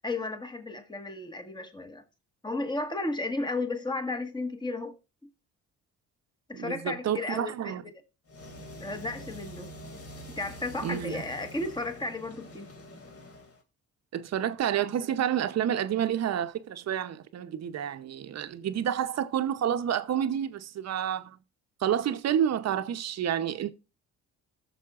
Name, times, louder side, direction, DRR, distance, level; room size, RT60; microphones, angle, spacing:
voice 1, 0.0-2.0 2.4-4.9 6.5-8.0 8.8-9.7 10.3-12.7, left 2 dB, 15° left, 1.6 m, -34 dB
voice 2, 6.5-7.8 10.8-11.2 14.1-21.4 21.8-23.7, right 9 dB, 60° right, 0.8 m, -29 dB
sound 1, 8.3-13.6, equal, 50° left, 2.4 m, -45 dB
15.0 x 6.7 x 2.5 m
cardioid pair, 90°, 30 cm